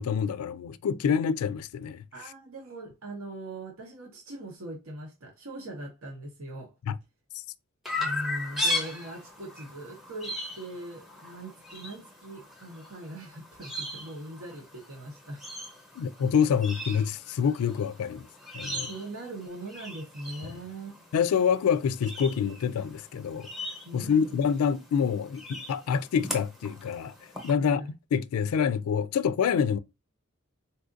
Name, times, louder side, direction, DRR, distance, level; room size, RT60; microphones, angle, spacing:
voice 1, 0.0-2.0 6.9-7.0 16.0-18.3 18.5-18.9 21.1-23.5 23.9-27.1 27.4-27.8 28.1-29.8, left 7 dB, 90° left, 0.3 m, -26 dB
voice 2, 2.1-6.7 8.0-15.4 18.8-21.0 23.8-24.4 27.5-27.9, right 1 dB, 80° right, 1.0 m, -41 dB
Chirp tweet, 7.9-27.5, left 1 dB, ahead, 0.8 m, -38 dB
4.1 x 2.4 x 2.5 m
head